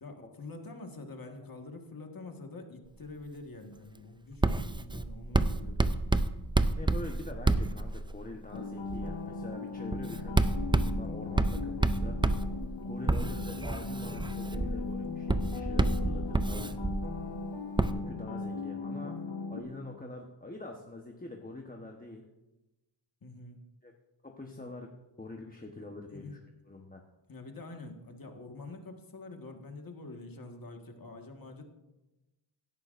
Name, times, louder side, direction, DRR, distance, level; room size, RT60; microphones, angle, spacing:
voice 1, 0.0-6.0 23.2-23.6 25.8-25.9 26.1-26.4 27.3-31.6, left 2 dB, 45° left, 3 dB, 1.6 m, -46 dB
Writing, 4.4-8.3 8.9-9.2 9.9-17.3 17.8-17.9, right 2 dB, 10° right, 0.4 m, -29 dB
voice 2, 6.8-10.4 10.8-12.2 12.8-16.7 17.9-19.2 19.5-22.3 23.8-23.9 24.2-24.9 25.2-26.4 26.7-27.0, left 2 dB, 15° left, 1 dB, 1.0 m, -44 dB
sound 1, 8.5-19.6, left 3 dB, 60° left, 1.2 m, -38 dB
17.0 x 11.0 x 2.6 m, 1.0 s
wide cardioid pair, 85°, 49 cm